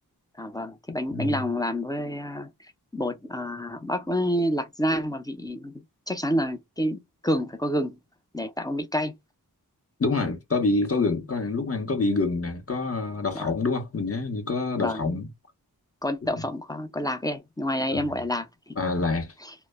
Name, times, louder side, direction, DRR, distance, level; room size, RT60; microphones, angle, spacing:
voice 1, 0.4-2.5 2.9-8.0 8.3-9.1 13.3-13.5 14.8-15.1 16.0-18.8 19.4-19.5, equal, 10° left, 0.5 m, -28 dB
voice 2, 10.0-15.3 17.9-18.1 18.8-19.3, left 3 dB, 40° left, 0.8 m, -26 dB
2.1 x 2.1 x 3.2 m
wide cardioid pair, 50°, 37 cm